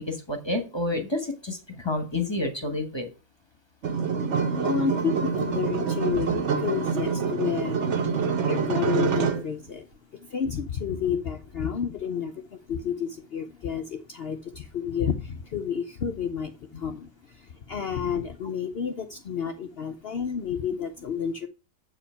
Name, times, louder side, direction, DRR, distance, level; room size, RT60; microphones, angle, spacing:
voice 1, 0.0-3.1 9.2-9.4 18.4-18.5, left 2 dB, 20° left, 6 dB, 1.1 m, -30 dB
sound 1, 3.8-9.5, right 6 dB, 55° right, 1.1 m, -26 dB
voice 2, 4.2-21.5, left 7 dB, 55° left, 7 dB, 0.7 m, -31 dB
7.9 x 4.9 x 5.5 m, 0.32 s
omnidirectional pair, 1.6 m